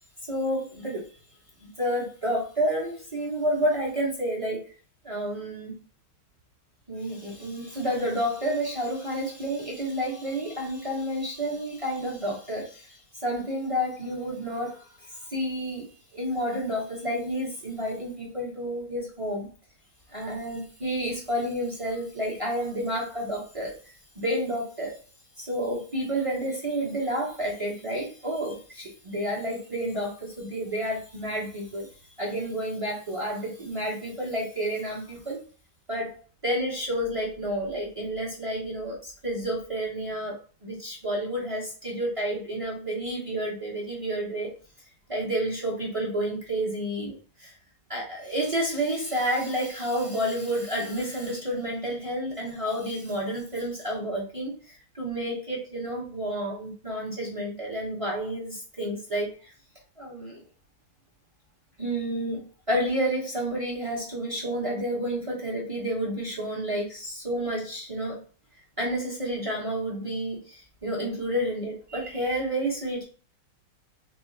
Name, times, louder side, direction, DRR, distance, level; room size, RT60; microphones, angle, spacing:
voice 1, 0.3-1.1 1.6-4.7 5.0-5.8 6.9-15.8 16.1-19.5 20.1-23.7 24.1-25.0 25.4-31.9 32.2-35.4 35.9-36.2 36.4-44.5 45.1-47.5 47.9-59.5 60.0-60.4 61.8-68.2 68.8-73.0, right 1 dB, 35° right, -4 dB, 0.5 m, -30 dB
3.6 x 3.3 x 3.2 m, 0.38 s
omnidirectional pair, 2.4 m